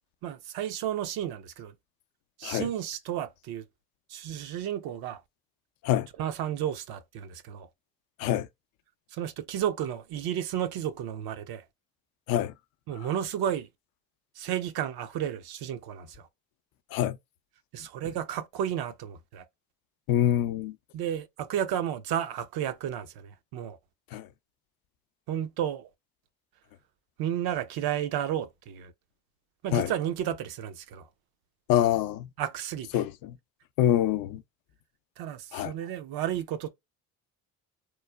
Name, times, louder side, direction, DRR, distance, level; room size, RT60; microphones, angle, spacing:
voice 1, 0.2-1.7 2.4-3.6 4.1-5.2 6.2-7.7 9.1-11.6 12.9-13.7 14.4-16.3 17.7-19.4 20.9-23.8 25.3-25.9 27.2-28.9 29.6-31.1 32.4-33.0 35.2-36.7, right 10 dB, 60° right, 0.6 m, -32 dB
voice 2, 20.1-20.7 24.1-24.3 29.7-29.9 31.7-32.3 32.9-33.3 33.8-34.4 35.5-35.7, left 11 dB, 60° left, 0.5 m, -25 dB
3.1 x 2.1 x 2.2 m
hypercardioid pair, 60°, 42 cm